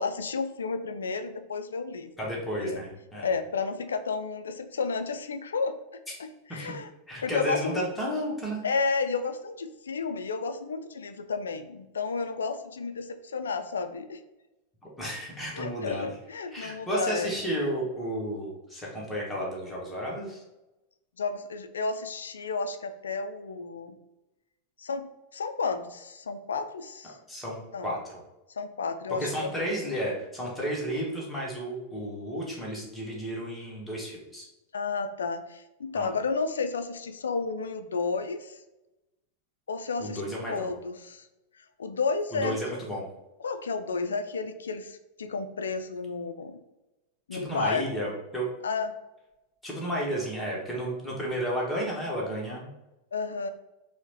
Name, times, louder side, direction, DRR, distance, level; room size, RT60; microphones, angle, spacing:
voice 1, 0.0-2.1 2.6-2.8 3.2-5.7 6.2-6.9 7.2-7.9 8.6-14.2 15.5-17.3 21.2-24.0 24.8-25.1 25.3-27.2 27.7-27.9 28.6-29.5 34.7-38.6 39.7-40.2 40.5-41.3 41.8-42.6 43.4-46.6 47.3-47.8 48.6-48.9 53.1-53.5, left 4 dB, 70° left, 9 dB, 0.3 m, -32 dB
voice 2, 2.2-3.3 6.5-6.7 7.1-8.6 15.0-16.1 16.5-20.4 27.3-27.6 27.8-28.1 29.2-34.5 35.9-36.1 40.0-40.7 42.3-43.1 47.3-48.4 49.6-52.7, equal, 5° left, -4 dB, 1.1 m, -32 dB
4.5 x 2.1 x 2.7 m, 0.98 s
figure-of-eight pair, 90°, 0 cm